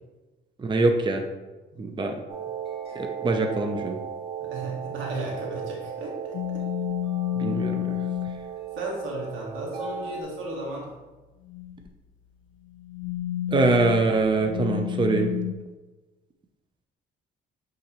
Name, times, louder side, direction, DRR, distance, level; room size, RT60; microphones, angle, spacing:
voice 1, 0.6-1.2 1.8-2.2 2.9-4.0 7.4-8.0 13.5-15.3, right 3 dB, 25° right, 4 dB, 0.6 m, -23 dB
sound 1, 2.3-10.2, right 8 dB, 55° right, 1.9 m, -37 dB
voice 2, 4.4-6.6 8.8-10.9, right 2 dB, 85° right, -2 dB, 1.8 m, -34 dB
sound 2, 6.3-8.4 11.4-11.8 12.7-15.5, left 14 dB, 85° left, 0.4 m, -30 dB
8.3 x 3.9 x 3.0 m, 1.2 s
cardioid pair, 90°, 20 cm